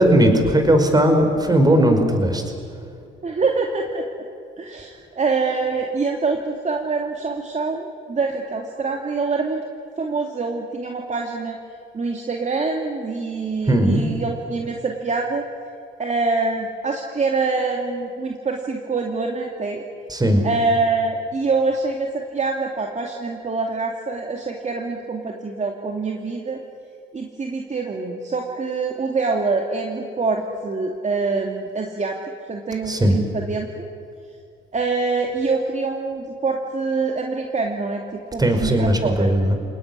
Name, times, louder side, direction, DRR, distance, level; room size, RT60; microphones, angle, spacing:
voice 1, 0.0-2.4 13.7-14.1 20.1-20.4 32.9-33.2 38.4-39.5, right 1 dB, 20° right, 5 dB, 5.2 m, -17 dB
voice 2, 3.2-4.2 4.6-9.6 10.0-11.6 11.9-15.4 16.0-19.8 20.4-26.6 27.1-32.1 32.5-33.8 34.7-39.3, right 4 dB, 35° right, 2 dB, 2.7 m, -25 dB
29.0 x 19.0 x 9.8 m, 2.5 s
cardioid pair, 90°, 20 cm